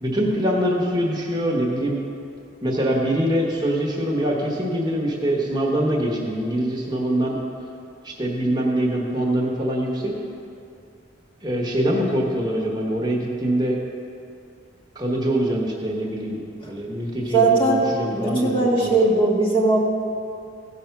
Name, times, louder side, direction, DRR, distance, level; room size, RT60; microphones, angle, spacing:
voice 1, 0.0-2.0 2.6-7.4 8.0-10.1 11.4-13.8 14.9-16.4 16.7-18.5 18.8-19.0, right 1 dB, 20° right, -2 dB, 1.2 m, -23 dB
voice 2, 17.3-19.8, right 3 dB, 30° left, -3 dB, 1.5 m, -19 dB
15.5 x 5.6 x 5.9 m, 2.5 s
head